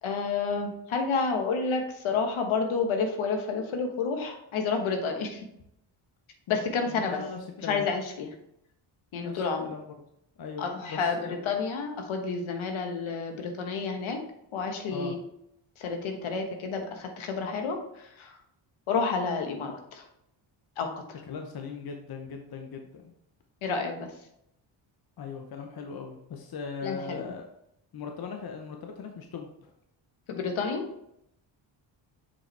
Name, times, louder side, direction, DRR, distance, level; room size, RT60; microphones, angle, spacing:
voice 1, 0.0-5.4 6.5-7.2 7.6-8.3 9.1-9.7 10.6-11.2 11.4-14.2 14.5-15.2 15.8-18.4 18.9-20.0 20.8-20.9 23.6-24.1 26.8-27.2 30.3-30.8, left 5 dB, 80° left, 4 dB, 1.4 m, -30 dB
voice 2, 6.8-7.9 9.2-9.8 10.4-11.4 14.9-15.1 21.2-23.1 25.2-27.5 27.9-29.7, left 5 dB, 50° left, 3 dB, 0.9 m, -39 dB
7.1 x 5.3 x 3.3 m, 0.77 s
cardioid pair, 90°, 48 cm